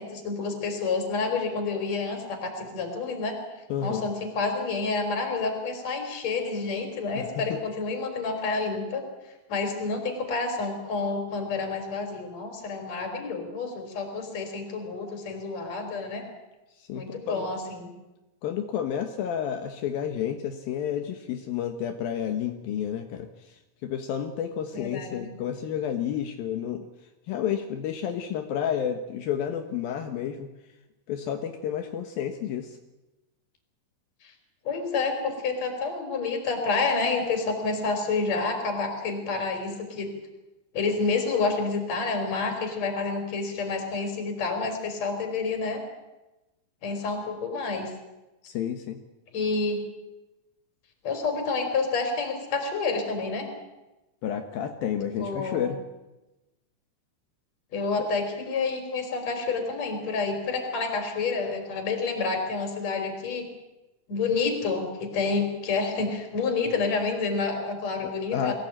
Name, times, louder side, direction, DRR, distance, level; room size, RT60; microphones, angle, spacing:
voice 1, 0.0-3.3 3.8-9.0 9.5-16.2 16.9-17.9 24.7-25.3 34.6-40.1 40.7-45.8 46.8-47.9 49.3-49.8 51.0-53.5 55.2-55.7 57.7-63.4 64.1-68.5, left 4 dB, 45° left, 4 dB, 5.0 m, -29 dB
voice 2, 3.7-4.1 7.1-7.6 16.8-17.5 18.4-23.3 23.8-26.9 27.3-30.5 31.1-32.7 48.4-49.0 54.2-55.8 58.0-58.1 68.0-68.5, left 9 dB, 75° left, 5 dB, 3.0 m, -30 dB
23.0 x 16.5 x 9.0 m, 1.0 s
omnidirectional pair, 4.4 m